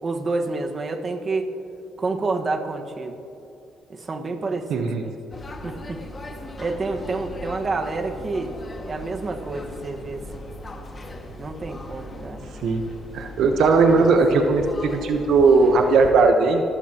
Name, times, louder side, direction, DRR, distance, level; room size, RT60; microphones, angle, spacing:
voice 1, 0.0-1.5 2.0-3.1 3.9-5.2 5.6-6.0 6.6-8.5 8.8-10.5 11.4-12.5, right 3 dB, 35° right, 4 dB, 1.6 m, -28 dB
voice 2, 4.7-5.1 12.6-12.8 13.1-16.6, right 4 dB, 75° right, 4 dB, 1.1 m, -18 dB
sound 1, 5.3-16.1, left 1 dB, 30° left, 2.0 m, -38 dB
26.0 x 15.5 x 3.0 m, 2.8 s
cardioid pair, 90°, 0 cm